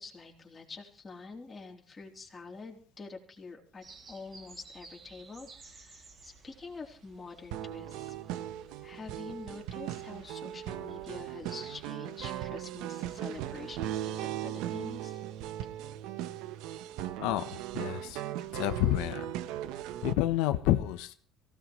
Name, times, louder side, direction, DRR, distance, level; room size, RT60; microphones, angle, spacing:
voice 1, 0.0-8.1 8.8-15.2, left 4 dB, 20° left, 0 dB, 3.3 m, -46 dB
sound 1, 3.8-11.6, right 3 dB, 30° right, 2.6 m, -56 dB
sound 2, 7.5-20.1, right 12 dB, 75° right, 1.0 m, -38 dB
voice 2, 17.2-18.2 18.5-19.3 20.0-21.1, left 14 dB, 85° left, 10 dB, 0.9 m, -29 dB
24.0 x 16.5 x 3.1 m, 0.42 s
cardioid pair, 150°, 0 cm